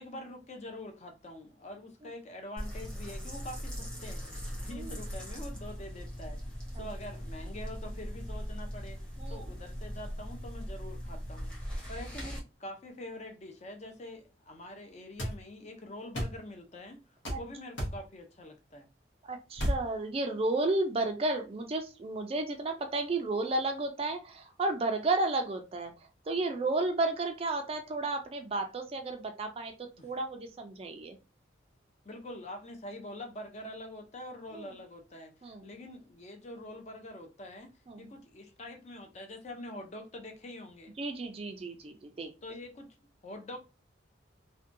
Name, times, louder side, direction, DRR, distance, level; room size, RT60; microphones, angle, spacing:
voice 1, 0.0-4.3 4.6-9.0 9.3-11.5 11.9-17.0 17.4-18.9 30.0-30.1 32.1-37.7 38.0-40.9 42.4-42.9 43.2-43.6, left 1 dB, 35° left, 0.5 m, -45 dB
sound 1, 2.6-12.4, equal, 5° left, 0.8 m, -40 dB
sound 2, 15.2-15.4 16.1-16.4 17.2-17.4 17.8-18.0 19.6-19.8, equal, 80° left, 0.9 m, -31 dB
voice 2, 19.3-25.9 26.3-31.2 34.5-34.7 35.4-35.6 37.9-38.1 41.0-42.3, right 2 dB, 30° right, 0.3 m, -32 dB
2.6 x 2.2 x 2.5 m
head